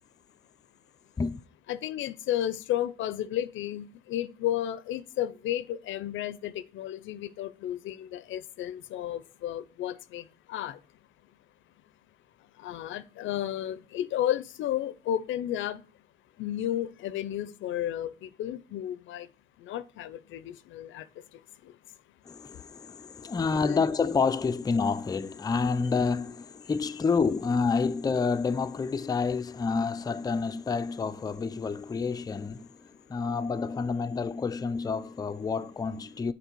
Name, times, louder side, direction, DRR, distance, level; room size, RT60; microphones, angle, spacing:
voice 1, 1.7-10.8 12.6-15.8 16.4-19.3 19.6-21.0 23.5-23.8, left 12 dB, 75° left, 0.5 m, -33 dB
voice 2, 22.2-36.3, left 5 dB, 20° left, 0.4 m, -29 dB
6.7 x 4.4 x 4.5 m
cardioid pair, 90°, 20 cm